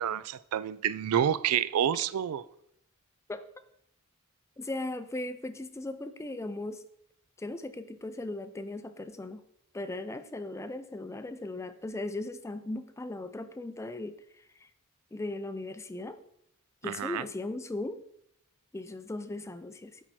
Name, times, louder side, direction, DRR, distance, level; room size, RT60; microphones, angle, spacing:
voice 1, 0.0-2.5 16.8-17.2, right 9 dB, 80° right, 0.3 m, -28 dB
voice 2, 4.6-6.8 7.4-9.4 9.7-14.7 15.1-16.2 16.8-18.0 18.7-20.0, left 2 dB, 15° left, 0.4 m, -38 dB
8.8 x 4.5 x 4.2 m
head